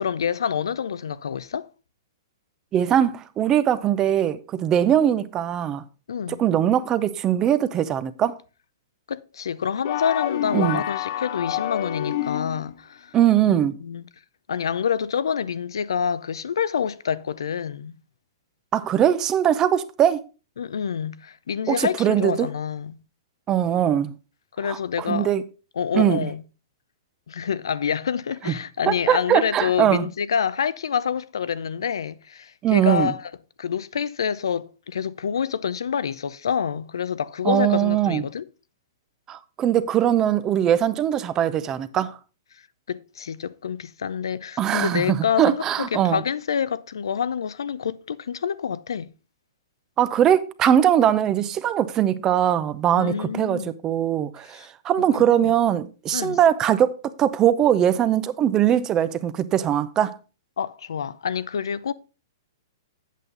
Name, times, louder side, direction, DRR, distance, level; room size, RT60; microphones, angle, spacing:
voice 1, 0.0-1.7 6.1-6.4 9.1-13.2 13.4-14.0 14.5-17.9 20.6-23.0 24.6-25.3 25.8-26.4 27.3-33.3 33.6-38.5 42.9-49.1 52.9-53.7 54.5-54.7 55.2-55.5 56.1-56.4 60.6-61.9, left 7 dB, 85° left, 0.6 m, -27 dB
voice 2, 2.7-5.8 6.4-8.4 10.5-10.8 13.1-13.8 18.7-20.2 21.7-22.5 23.5-24.1 24.6-25.4 25.9-26.3 28.5-28.6 28.9-30.1 32.6-33.1 37.4-38.2 39.3-42.1 44.6-46.2 50.0-56.9 57.2-60.2, right 10 dB, 25° right, 0.7 m, -21 dB
sound 1, 9.8-12.7, left 12 dB, 50° left, 0.7 m, -28 dB
8.3 x 7.7 x 4.0 m
hypercardioid pair, 140°, 2 cm